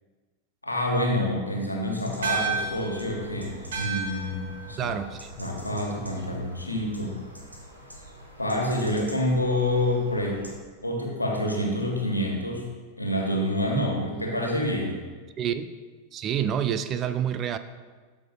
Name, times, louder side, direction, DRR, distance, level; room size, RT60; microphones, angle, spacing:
voice 1, 0.6-4.9 5.4-7.1 8.4-10.4 10.8-12.6 13.0-14.9, left 1 dB, 85° left, -1 dB, 1.3 m, -27 dB
sound 1, 2.0-10.6, equal, 85° right, 1.1 m, -46 dB
sound 2, 2.2-6.9, right 5 dB, 60° right, 1.1 m, -35 dB
voice 2, 4.8-5.3 15.4-15.7 16.1-17.6, right 9 dB, 30° right, 11 dB, 0.4 m, -28 dB
12.0 x 6.1 x 2.2 m, 1.4 s
figure-of-eight pair, 90°, 0 cm